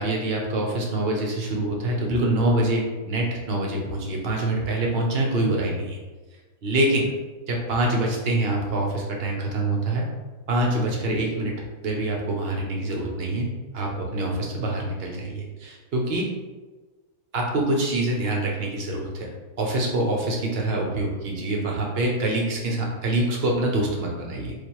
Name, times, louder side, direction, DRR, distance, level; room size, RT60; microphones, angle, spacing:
voice 1, 0.0-6.0 6.6-7.1 7.5-10.0 10.5-11.5 11.8-13.5 13.7-16.2 17.3-19.3 19.6-24.5, right 1 dB, 50° right, -1 dB, 0.8 m, -25 dB
3.3 x 2.4 x 4.4 m, 1.3 s
omnidirectional pair, 1.7 m